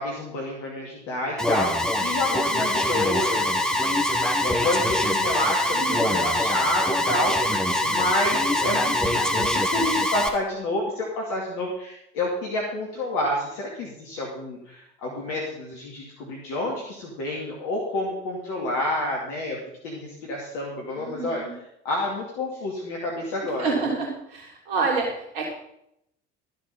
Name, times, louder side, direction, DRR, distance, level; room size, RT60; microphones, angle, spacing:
voice 1, 0.0-7.5 7.8-19.6 19.8-21.4 21.8-23.7, left 1 dB, 55° left, -3 dB, 2.5 m, -29 dB
Alarm, 1.4-10.3, left 1 dB, ahead, 1.2 m, -24 dB
voice 2, 5.7-6.2 20.9-21.5 23.4-25.5, right 4 dB, 60° right, 0 dB, 3.2 m, -29 dB
13.0 x 7.9 x 5.5 m, 0.79 s
figure-of-eight pair, 60°, 36 cm